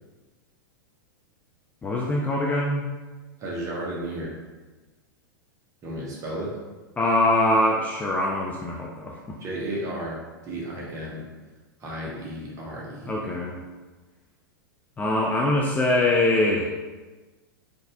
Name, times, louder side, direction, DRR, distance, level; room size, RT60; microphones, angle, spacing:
voice 1, 1.8-2.8 7.0-9.4 13.1-13.6 15.0-16.7, left 1 dB, 15° left, -2 dB, 0.3 m, -23 dB
voice 2, 3.4-4.4 5.8-6.5 9.4-10.2 10.4-11.2 11.8-13.1, right 1 dB, 30° right, -4 dB, 1.0 m, -33 dB
3.8 x 2.6 x 2.5 m, 1.2 s
figure-of-eight pair, 100°, 11 cm